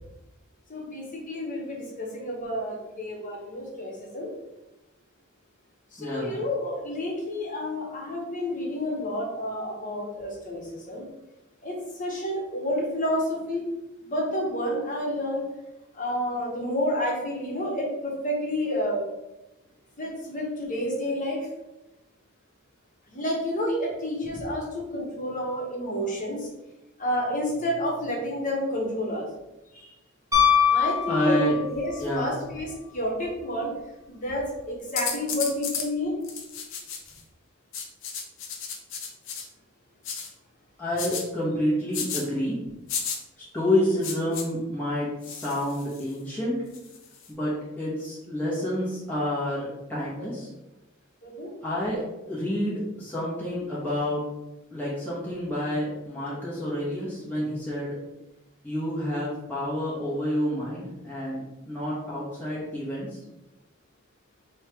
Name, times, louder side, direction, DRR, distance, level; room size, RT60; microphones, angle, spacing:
voice 1, 0.7-4.3 5.9-11.0 11.6-13.7 14.0-15.4 15.9-19.1 20.0-21.5 23.1-26.5 27.0-29.3 29.7-29.9 30.7-33.7 34.1-36.2 51.2-51.5, left 1 dB, 40° left, -3 dB, 1.2 m, -30 dB
voice 2, 6.0-6.4 24.3-24.4 31.1-31.6 32.0-32.3 40.8-42.6 43.4-46.6 47.3-50.5 51.6-54.2 54.7-58.0 58.6-63.2, left 1 dB, 10° left, -9 dB, 1.0 m, -29 dB
Piano, 30.3-31.9 34.3-34.4, left 8 dB, 15° right, 0.9 m, -22 dB
sound 1, 35.0-35.9 36.2-37.2 37.7-39.5 40.0-40.3 41.0-41.2 41.9-42.2 42.9-43.2 44.0-44.4 45.2-46.1 46.7-47.3, left 6 dB, 65° left, 0.7 m, -33 dB
3.2 x 3.1 x 4.5 m, 0.97 s
head